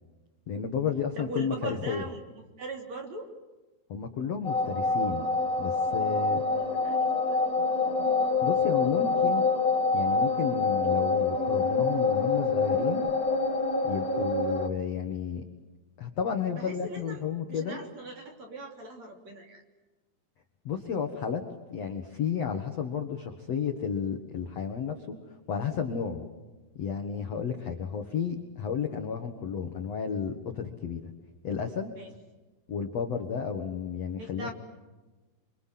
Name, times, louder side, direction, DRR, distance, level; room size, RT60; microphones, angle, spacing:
voice 1, 0.5-2.1 3.9-5.3 5.6-6.4 8.4-9.5 9.9-13.0 13.8-15.4 16.0-17.8 20.6-21.4 21.7-26.3 26.8-31.1 31.4-31.9 32.7-34.5, left 6 dB, 60° left, 5 dB, 1.8 m, -32 dB
voice 2, 1.2-2.2 2.6-3.3 6.8-7.4 16.5-19.6 32.0-32.1 34.2-34.5, right 2 dB, 40° right, 4 dB, 4.0 m, -40 dB
sound 1, 4.4-14.7, left 4 dB, 85° left, 0.7 m, -26 dB
29.5 x 24.5 x 7.8 m, 1.2 s
omnidirectional pair, 5.6 m